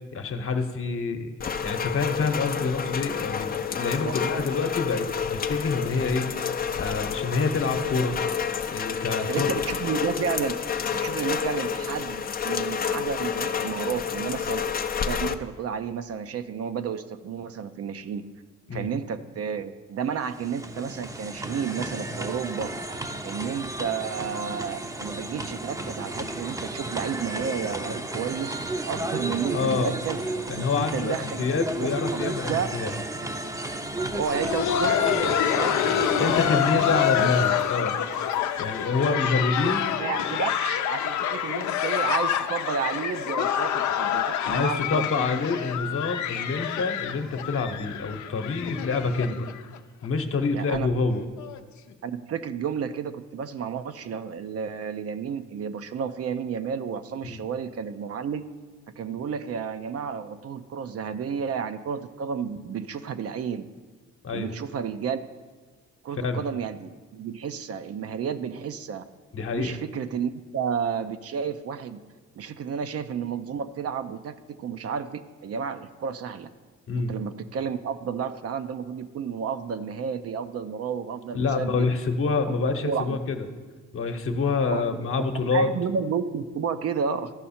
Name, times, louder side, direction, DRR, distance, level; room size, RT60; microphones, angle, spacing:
voice 1, 0.1-1.3 1.6-6.3 6.8-8.2 8.7-9.5 18.7-18.9 29.5-29.9 30.5-32.9 36.2-37.9 38.6-39.8 44.3-49.4 50.0-51.2 57.2-57.4 64.2-64.5 66.2-66.4 69.3-69.8 76.9-77.1 81.3-83.4 83.9-85.7, left 4 dB, 45° left, 6 dB, 1.0 m, -27 dB
Rain, 1.4-15.4, left 7 dB, 30° left, 0.5 m, -29 dB
voice 2, 4.0-4.6 9.3-14.6 15.0-18.2 18.7-22.7 23.2-28.6 28.9-30.2 30.6-31.4 31.8-32.7 34.1-37.3 39.0-39.7 40.0-45.4 50.5-50.9 52.0-58.5 59.0-63.7 64.3-65.2 66.0-69.0 69.5-72.0 72.4-76.5 76.9-81.9 82.5-82.6 82.8-83.2 84.7-87.3, right 7 dB, 50° right, 10 dB, 0.5 m, -32 dB
sound 1, 20.1-38.1, right 1 dB, 10° right, 0.6 m, -33 dB
Laughter, 34.1-49.8 50.0-50.1 50.7-50.9 51.4-51.6 52.7-52.8, left 10 dB, 75° left, 0.6 m, -27 dB
14.0 x 5.4 x 4.3 m, 1.4 s
cardioid pair, 90°, 30 cm